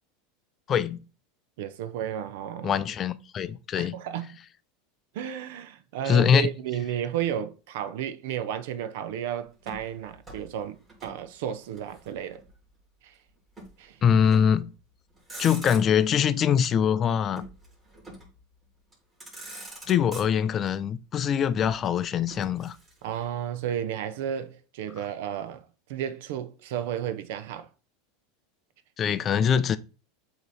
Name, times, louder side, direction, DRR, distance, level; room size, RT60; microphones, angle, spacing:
voice 1, 0.7-1.0 2.6-4.0 6.1-6.5 14.0-14.7 15.4-17.4 19.9-22.8 29.0-29.8, left 8 dB, 30° left, 0.4 m, -23 dB
voice 2, 1.6-2.8 3.7-4.4 5.1-12.4 13.0-13.1 13.8-14.0 23.0-27.7, right 10 dB, 70° right, 0.7 m, -33 dB
Motor vehicle (road), 9.6-11.2 11.5-12.6 13.6-13.8 14.2-14.7 15.1-16.2 17.3-18.4 18.9-19.0 19.2-20.7 21.6-23.2, right 1 dB, 15° right, 2.6 m, -45 dB
7.7 x 2.9 x 4.2 m
supercardioid pair, 140°, 0 cm